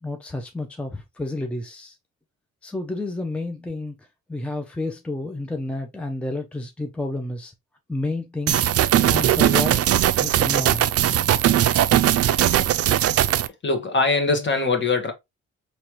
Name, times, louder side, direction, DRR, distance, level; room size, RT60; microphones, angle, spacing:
voice 1, 0.0-1.9 2.6-4.0 4.3-7.5 7.9-9.8 10.2-10.9, left 2 dB, 5° left, 0.6 m, -30 dB
sound 1, 8.5-13.5, right 12 dB, 55° right, 0.5 m, -19 dB
voice 2, 13.6-15.1, left 3 dB, 40° left, 1.4 m, -22 dB
4.5 x 3.1 x 3.0 m
cardioid pair, 90°, 30 cm